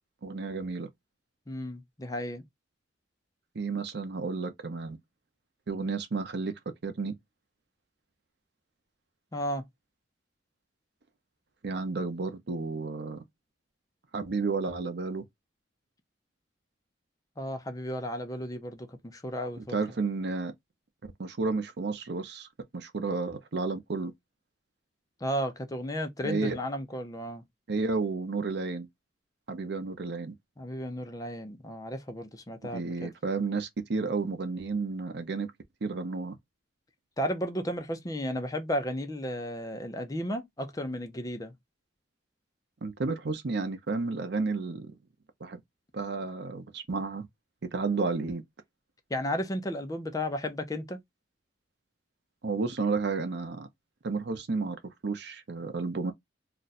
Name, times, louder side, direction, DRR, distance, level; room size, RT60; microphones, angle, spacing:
voice 1, 0.2-0.9 3.5-5.0 5.7-6.5 6.8-7.2 11.6-13.2 14.1-15.2 19.6-20.5 21.2-22.5 22.7-24.1 26.2-26.6 27.7-28.9 29.5-30.3 32.7-35.5 35.8-36.4 42.8-44.9 45.4-45.6 45.9-47.3 47.7-48.4 52.4-53.7 54.0-54.8 55.0-56.1, right 4 dB, 65° right, 0.6 m, -31 dB
voice 2, 1.5-2.4 9.3-9.6 17.4-19.8 25.2-27.4 30.6-33.1 37.2-41.5 49.1-51.0, equal, 20° left, 0.5 m, -34 dB
2.5 x 2.2 x 4.0 m
head